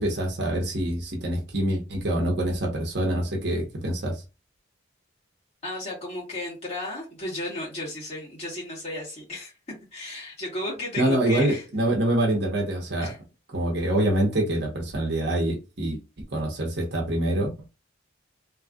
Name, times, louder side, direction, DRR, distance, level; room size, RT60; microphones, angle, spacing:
voice 1, 0.0-4.2 11.0-13.1 13.5-16.0 16.3-17.5, right 1 dB, 55° right, 1.2 m, -25 dB
voice 2, 5.6-9.5 9.9-11.6 13.0-13.2, left 1 dB, 30° left, 2.0 m, -34 dB
3.4 x 3.2 x 2.4 m
head